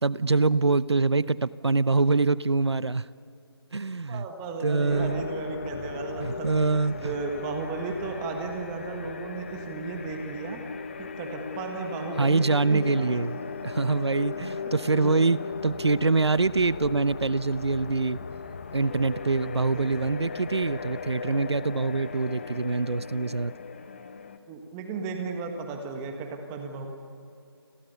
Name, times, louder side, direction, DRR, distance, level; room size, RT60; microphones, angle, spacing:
voice 1, 0.0-3.1 3.7-4.3 4.6-5.2 6.2-7.1 12.2-18.2 18.7-23.5, right 3 dB, 85° right, 17 dB, 0.8 m, -25 dB
voice 2, 4.1-6.7 7.0-10.6 11.0-13.2 14.6-15.1 19.7-20.0 24.5-26.9, right 4 dB, 10° right, 4 dB, 1.5 m, -35 dB
sound 1, 4.9-24.4, left 5 dB, 30° left, 1.0 m, -37 dB
29.5 x 21.5 x 7.0 m, 2.6 s
figure-of-eight pair, 165°, 14 cm